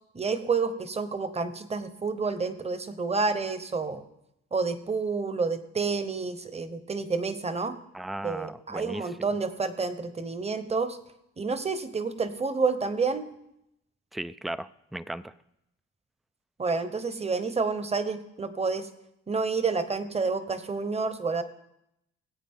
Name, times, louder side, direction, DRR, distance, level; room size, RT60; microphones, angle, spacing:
voice 1, 0.1-4.0 4.5-7.8 8.2-11.0 11.4-13.3 16.6-18.9 19.3-21.4, right 4 dB, 20° right, 11 dB, 1.1 m, -29 dB
voice 2, 7.9-9.0 14.1-15.3, right 1 dB, ahead, 16 dB, 0.3 m, -36 dB
20.0 x 8.3 x 3.7 m, 0.82 s
cardioid pair, 90°, 30 cm